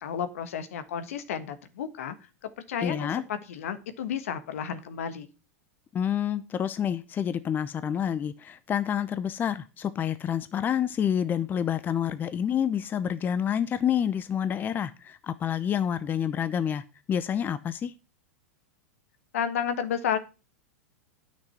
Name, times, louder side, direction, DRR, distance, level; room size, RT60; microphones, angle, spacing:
voice 1, 0.0-2.1 2.7-5.3 19.3-20.2, left 8 dB, 70° left, 1.4 m, -32 dB
voice 2, 2.8-3.2 5.9-16.8 17.1-17.9, left 9 dB, 25° left, 0.7 m, -28 dB
9.8 x 6.2 x 5.8 m
hypercardioid pair, 110°, 8 cm